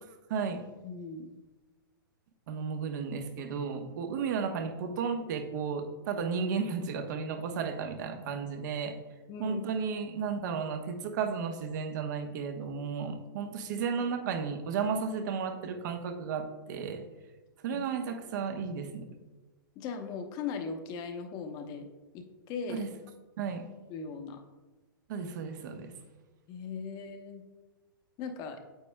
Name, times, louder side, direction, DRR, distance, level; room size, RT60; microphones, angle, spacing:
voice 1, 0.3-0.6 2.5-9.0 9.4-17.0 17.6-19.1 22.7-22.9 23.4-23.6 25.1-25.9, right 6 dB, 55° right, 6 dB, 1.0 m, -33 dB
voice 2, 0.8-1.3 9.3-9.6 17.7-17.8 19.7-21.9 22.1-22.8 23.9-24.4 26.5-27.4 28.2-28.6, left 5 dB, 35° left, 5 dB, 0.9 m, -38 dB
9.2 x 7.1 x 2.2 m, 1.2 s
hypercardioid pair, 115°, 12 cm